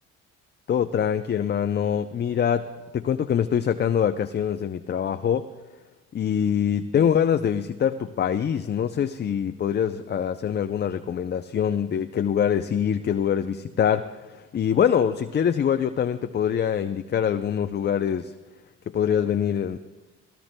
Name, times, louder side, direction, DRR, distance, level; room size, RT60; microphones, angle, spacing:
voice 1, 0.7-2.7 2.9-5.5 6.1-18.3 18.9-19.8, left 8 dB, 30° left, 9 dB, 0.5 m, -24 dB
18.5 x 16.5 x 2.2 m, 1.2 s
supercardioid pair, 70°, 34 cm